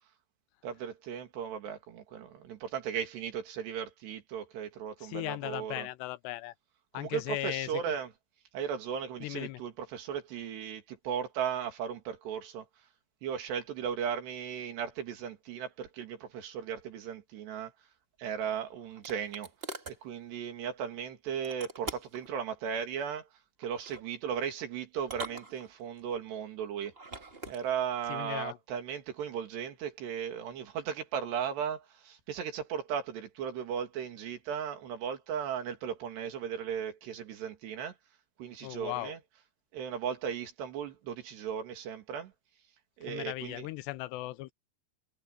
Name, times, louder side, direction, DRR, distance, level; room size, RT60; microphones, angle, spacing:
voice 1, 0.6-5.9 7.0-8.1 8.5-12.6 13.2-17.7 18.2-19.5 19.9-23.3 23.6-26.9 27.5-37.9 38.4-39.2 39.7-42.3 43.0-43.7, right 8 dB, 80° right, 4.6 m, -36 dB
voice 2, 5.0-6.5 6.9-8.0 9.2-9.6 28.1-28.6 38.6-39.1 43.1-44.5, left 18 dB, 85° left, 2.9 m, -37 dB
sound 1, 18.2-20.0 21.4-22.3 23.6-24.1 25.0-26.0 26.8-27.6, right 2 dB, 25° right, 1.2 m, -43 dB
omnidirectional pair, 4.8 m